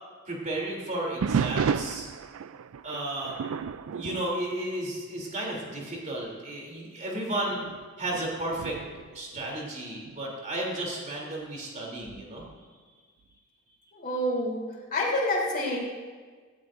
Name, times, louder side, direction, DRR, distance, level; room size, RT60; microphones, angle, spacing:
voice 1, 0.3-2.1 2.8-7.6 8.0-8.8 9.1-12.7, right 1 dB, 35° right, -2 dB, 3.2 m, -33 dB
sound 1, 1.2-5.3 5.7-6.0 6.6-6.7 7.5-10.2 12.0-12.5, right 6 dB, 65° right, 0.4 m, -33 dB
voice 2, 13.9-15.8, left 1 dB, 45° left, -3 dB, 3.6 m, -28 dB
17.5 x 15.0 x 2.6 m, 1.5 s
head